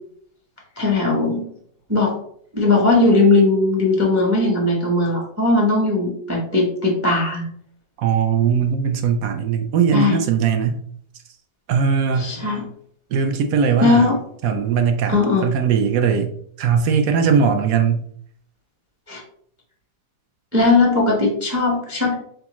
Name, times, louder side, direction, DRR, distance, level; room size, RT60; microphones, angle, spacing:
voice 1, 0.8-1.4 1.9-2.1 2.5-7.4 9.9-10.2 12.2-12.6 13.8-14.2 15.1-15.5 19.1-19.2 20.5-22.1, left 3 dB, 20° right, -2 dB, 0.4 m, -18 dB
voice 2, 8.0-10.8 11.7-12.3 13.1-14.1 14.4-15.2 15.4-16.3 16.6-18.1, right 6 dB, 70° right, 6 dB, 0.8 m, -19 dB
3.8 x 3.5 x 3.0 m, 0.63 s
omnidirectional pair, 1.8 m